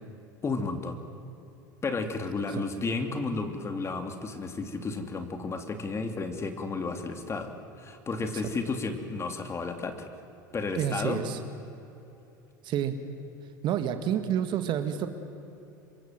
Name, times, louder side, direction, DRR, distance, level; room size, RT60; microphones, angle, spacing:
voice 1, 0.4-1.0 1.8-7.5 7.8-10.1 10.5-11.2, left 3 dB, 25° left, 6 dB, 3.1 m, -32 dB
voice 2, 10.8-11.4 12.6-13.0 13.6-15.1, right 9 dB, 50° right, 9 dB, 2.0 m, -29 dB
27.5 x 24.0 x 7.7 m, 2.9 s
hypercardioid pair, 80°, 11 cm